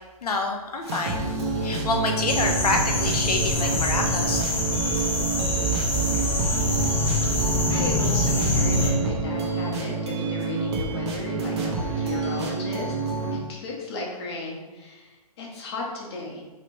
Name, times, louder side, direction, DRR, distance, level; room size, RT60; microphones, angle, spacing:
voice 1, 0.2-1.3 1.6-4.4, left 3 dB, 90° left, 2 dB, 0.7 m, -27 dB
sound 1, 0.8-13.4, right 4 dB, 45° right, 0.7 m, -28 dB
sound 2, 2.3-8.9, left 1 dB, 10° left, 0.5 m, -25 dB
voice 2, 7.2-13.0 13.3-16.4, left 2 dB, 45° left, -2 dB, 0.9 m, -35 dB
3.2 x 3.0 x 2.7 m, 1.2 s
hypercardioid pair, 140°, 19 cm